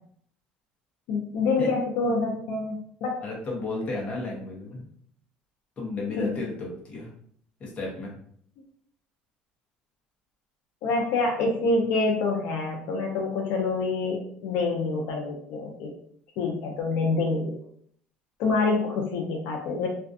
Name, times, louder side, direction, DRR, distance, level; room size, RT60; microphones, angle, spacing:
voice 1, 1.1-3.2 6.2-6.3 10.8-15.9 16.4-17.6 18.4-19.9, left 3 dB, 70° left, 0 dB, 0.5 m, -26 dB
voice 2, 3.2-4.8 5.8-7.1 7.6-8.1, left 2 dB, 30° left, -2 dB, 0.8 m, -33 dB
2.4 x 2.2 x 2.5 m, 0.63 s
cardioid pair, 155°, 4 cm